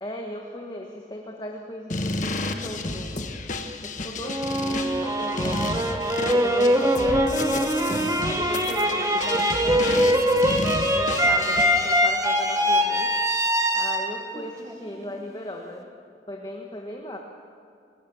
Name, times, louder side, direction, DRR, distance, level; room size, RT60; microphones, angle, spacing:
voice 1, 0.0-3.4 3.8-6.0 6.3-7.7 8.2-10.5 10.9-13.1 13.7-15.9 16.3-17.2, left 1 dB, 25° left, 1 dB, 1.5 m, -37 dB
sound 1, 1.9-12.0, left 2 dB, 40° left, 1.4 m, -32 dB
sound 2, 4.2-15.3, equal, 20° right, 1.5 m, -23 dB
28.0 x 18.5 x 7.1 m, 2.5 s
head